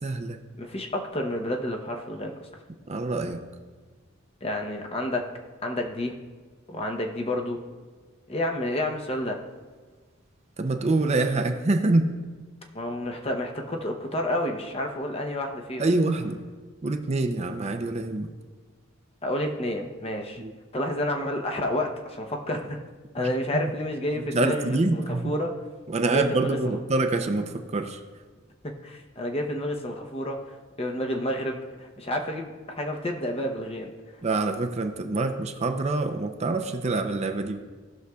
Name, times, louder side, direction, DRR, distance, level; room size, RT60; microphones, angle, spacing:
voice 1, 0.0-0.4 2.9-3.4 10.6-12.1 15.8-16.4 16.8-18.3 20.4-20.5 23.5-23.6 24.2-25.3 25.9-28.0 34.2-37.6, right 2 dB, 35° right, 5 dB, 0.5 m, -25 dB
voice 2, 0.6-2.5 4.4-6.2 6.7-7.6 8.3-9.4 12.7-15.8 19.2-20.4 20.7-22.8 23.1-25.6 26.1-26.8 28.6-30.4 30.8-33.9, left 1 dB, 30° left, 3 dB, 0.8 m, -30 dB
17.5 x 6.3 x 2.3 m, 1.4 s
head